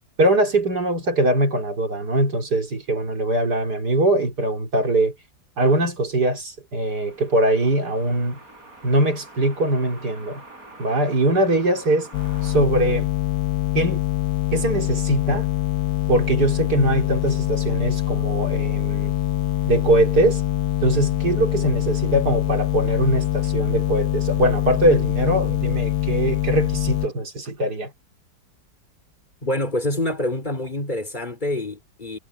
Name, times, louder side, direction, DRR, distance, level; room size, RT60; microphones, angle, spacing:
voice 1, 0.2-5.1 5.6-8.4 8.8-10.4 10.8-12.1 12.4-13.1 13.7-14.0 14.5-15.5 16.1-19.1 19.7-20.4 20.8-27.9, right 1 dB, 70° right, 4.1 m, -21 dB
sound 1, 6.8-12.6, right 2 dB, 55° right, 7.0 m, -45 dB
sound 2, 12.1-27.1, left 13 dB, 70° left, 1.2 m, -24 dB
voice 2, 29.4-32.2, left 1 dB, 25° left, 4.4 m, -26 dB
omnidirectional pair, 1.8 m